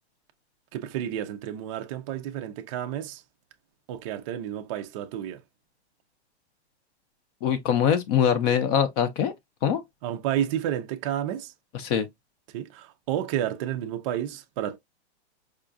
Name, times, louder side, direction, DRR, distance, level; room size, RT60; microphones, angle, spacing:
voice 1, 0.7-3.2 3.9-5.4 10.0-11.5 12.5-14.8, right 11 dB, 30° right, 0.4 m, -31 dB
voice 2, 7.4-9.3 9.6-9.8 11.7-12.1, left 8 dB, 35° left, 0.5 m, -23 dB
4.8 x 2.4 x 2.5 m
hypercardioid pair, 140°, 34 cm